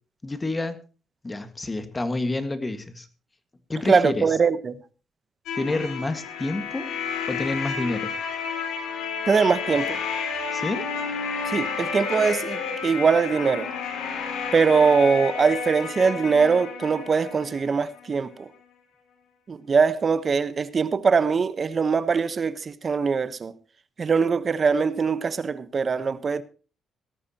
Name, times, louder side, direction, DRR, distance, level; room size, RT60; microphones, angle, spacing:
voice 1, 0.2-0.8 1.2-3.1 3.7-4.3 5.6-6.9 7.3-8.1 10.5-10.9, left 2 dB, 20° left, 1.7 m, -28 dB
voice 2, 3.9-4.8 9.3-10.0 11.5-13.7 14.5-18.5 19.5-23.5 24.0-26.4, right 5 dB, 40° right, 1.1 m, -22 dB
sound 1, 5.5-18.1, left 6 dB, 85° left, 3.9 m, -31 dB
17.5 x 13.5 x 2.9 m
cardioid pair, 90°, 0 cm